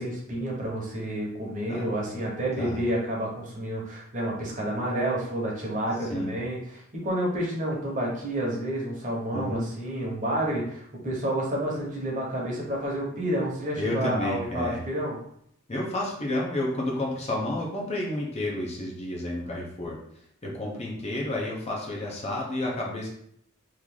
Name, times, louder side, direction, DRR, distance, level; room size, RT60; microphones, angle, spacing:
voice 1, 0.0-15.2, right 1 dB, 40° right, -3 dB, 1.1 m, -30 dB
voice 2, 9.3-9.7 13.8-14.8 15.7-20.0 20.4-23.1, left 1 dB, 30° left, -2 dB, 0.7 m, -30 dB
3.1 x 2.6 x 3.7 m, 0.69 s
head